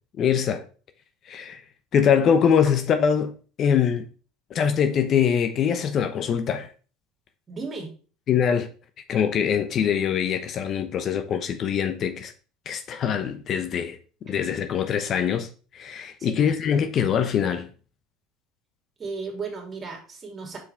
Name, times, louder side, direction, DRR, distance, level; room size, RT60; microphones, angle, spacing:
voice 1, 0.2-0.6 1.3-1.6 1.9-4.1 4.5-6.7 8.3-8.7 9.1-12.3 12.7-17.7, left 8 dB, 45° left, 0.7 m, -23 dB
voice 2, 7.5-7.9 16.2-16.5 19.0-20.6, right 4 dB, 35° right, 2.5 m, -35 dB
6.0 x 4.8 x 3.3 m
hypercardioid pair, 75°, 0 cm